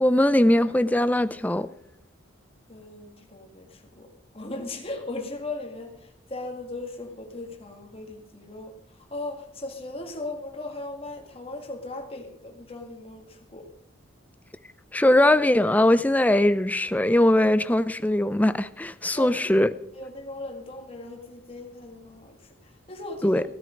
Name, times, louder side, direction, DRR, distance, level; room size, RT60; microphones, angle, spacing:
voice 1, 0.0-1.7 14.9-19.7 23.2-23.4, left 1 dB, 10° left, 0.4 m, -20 dB
voice 2, 2.7-13.7 19.2-19.5 19.9-23.4, left 2 dB, 30° left, 1.9 m, -38 dB
16.0 x 10.0 x 5.2 m
head